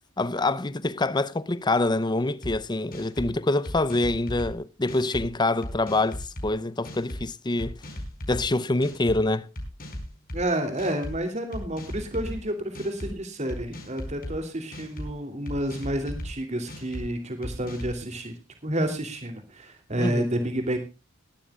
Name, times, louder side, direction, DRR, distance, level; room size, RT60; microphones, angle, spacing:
voice 1, 0.2-7.8 8.3-9.5 20.0-20.3, left 2 dB, 20° left, 0.6 m, -25 dB
sound 1, 2.4-2.5 2.9-3.3 3.7-4.5 4.9-5.2 5.6-6.5 6.8-7.2 7.6-8.4 8.8-9.2 9.6-10.4 10.8-11.2 11.5-12.4 12.7-13.1 13.5-14.3 14.7-15.1 15.5-16.3 16.7-17.0 17.4-18.0, equal, 45° left, 4.9 m, -36 dB
voice 2, 10.3-18.3 18.6-20.8, right 1 dB, 35° right, 3.0 m, -30 dB
21.0 x 13.0 x 2.4 m
head